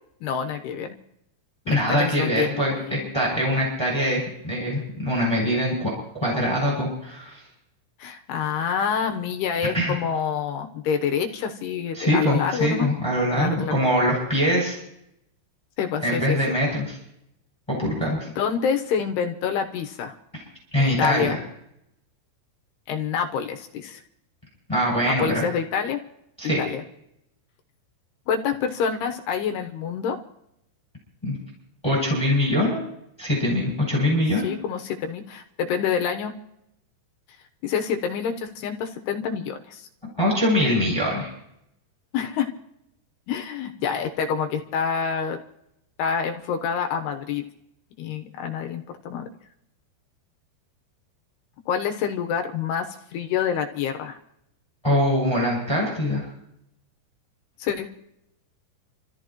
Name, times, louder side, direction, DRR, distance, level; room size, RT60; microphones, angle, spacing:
voice 1, 0.2-1.0 1.7-3.1 8.0-12.9 13.4-13.8 15.8-16.4 18.4-20.2 20.8-21.4 22.9-24.0 25.0-26.0 26.6-26.8 28.3-30.2 34.4-36.3 37.6-39.9 42.1-42.5 43.3-45.4 46.0-47.4 48.0-49.3 51.7-52.9 53.1-54.2 57.6-57.9, left 7 dB, 70° left, 5 dB, 2.8 m, -27 dB
voice 2, 1.7-7.4 9.7-10.0 11.9-14.8 16.0-17.0 17.7-18.3 20.3-20.4 20.7-21.4 24.7-25.4 26.4-26.6 31.2-31.4 31.8-32.8 33.2-34.5 40.2-41.3 54.8-56.3, equal, 5° left, -3 dB, 6.4 m, -23 dB
29.0 x 14.5 x 3.1 m, 0.77 s
omnidirectional pair, 5.5 m